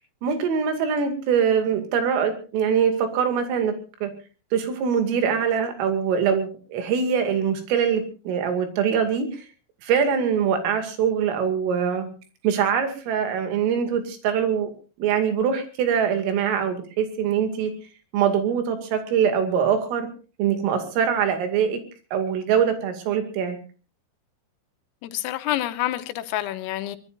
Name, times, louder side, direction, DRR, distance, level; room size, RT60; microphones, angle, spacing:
voice 1, 0.2-3.7 4.0-4.1 4.5-9.3 9.8-12.1 12.4-14.7 15.0-17.7 18.1-20.1 20.4-21.8 22.1-23.6, right 7 dB, 80° right, 5.0 m, -23 dB
voice 2, 25.0-27.0, left 14 dB, 90° left, 3.6 m, -28 dB
23.5 x 20.5 x 2.6 m
omnidirectional pair, 5.8 m